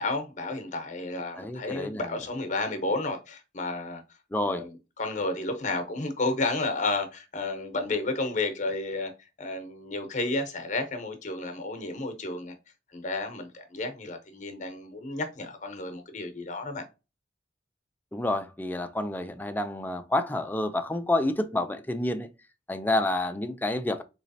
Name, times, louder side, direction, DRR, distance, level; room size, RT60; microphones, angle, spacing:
voice 1, 0.0-4.0 4.4-9.1 9.4-12.5 12.9-16.8, left 2 dB, 40° left, 0.8 m, -32 dB
voice 2, 1.4-2.0 4.3-4.6 18.1-22.3 22.7-24.0, left 1 dB, 10° left, 0.4 m, -29 dB
3.9 x 3.1 x 2.7 m
head